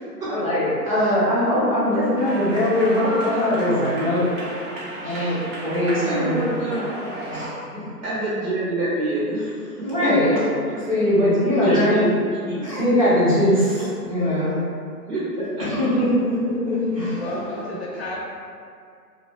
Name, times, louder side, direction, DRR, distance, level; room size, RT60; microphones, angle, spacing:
voice 1, 0.3-4.2 5.0-6.5 7.3-7.8 9.8-10.3 10.9-12.1 12.6-14.5 15.7-17.2 17.4-17.6, left 1 dB, 25° right, -11 dB, 0.4 m, -21 dB
voice 2, 1.0-1.3 6.0-6.9 8.0-10.4 10.8-10.9 11.6-12.1 12.4-12.7 13.8-13.9 15.1-15.6 17.0-17.1, right 1 dB, 75° right, -10 dB, 1.1 m, -26 dB
sound 1, 2.2-7.5, right 1 dB, 50° right, 0.7 m, -33 dB
voice 3, 17.1-18.2, left 1 dB, 45° left, -4 dB, 0.5 m, -32 dB
2.4 x 2.1 x 2.9 m, 2.2 s
hypercardioid pair, 140°, 48 cm